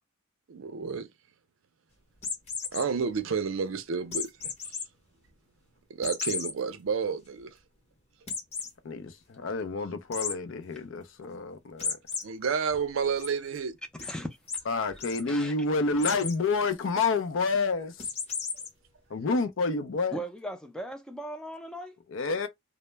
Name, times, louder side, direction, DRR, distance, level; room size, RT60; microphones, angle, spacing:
voice 1, 0.5-1.1 2.7-4.8 5.9-7.6 12.2-13.8 18.5-18.6, right 5 dB, 70° right, 0.5 m, -31 dB
sound 1, 2.2-2.8 4.1-4.8 5.3-5.4 6.0-6.5 7.0-7.1 7.4-7.5 8.3-8.7 10.1-10.3 11.8-12.2 12.7-13.3 14.0-14.1 14.5-14.6 14.9-15.2 16.0-16.4 18.0-18.7, left 5 dB, 30° left, 0.8 m, -33 dB
voice 2, 8.8-12.0 14.6-18.1 19.1-20.3 22.1-22.5, left 3 dB, 65° left, 0.5 m, -29 dB
voice 3, 14.0-14.4 15.3-15.5 20.1-22.0, right 1 dB, 5° left, 0.4 m, -38 dB
2.1 x 2.0 x 3.2 m
head